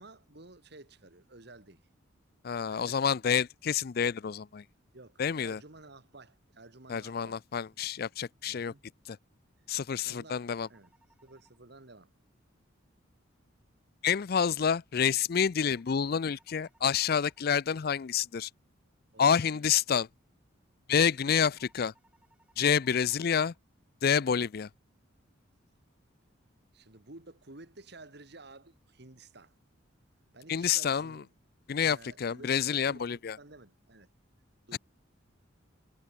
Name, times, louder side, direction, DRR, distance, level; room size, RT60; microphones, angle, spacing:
voice 1, 0.0-1.9 2.7-3.1 4.9-7.4 8.5-8.8 10.0-10.9 11.2-12.1 19.1-19.5 21.0-21.2 26.7-29.5 30.3-31.3 31.8-34.1 34.7-34.8, right 2 dB, 55° right, 1.9 m, -53 dB
voice 2, 2.4-4.6 5.2-5.6 6.9-8.7 9.1-9.2 9.7-10.7 14.0-18.5 19.2-20.1 20.9-21.9 22.6-23.5 24.0-24.7 30.5-31.2 31.7-33.4 34.7-34.8, left 7 dB, 50° left, 0.4 m, -28 dB
sound 1, 10.4-11.6 15.6-17.6 21.6-23.6, right 1 dB, 5° right, 7.5 m, -67 dB
head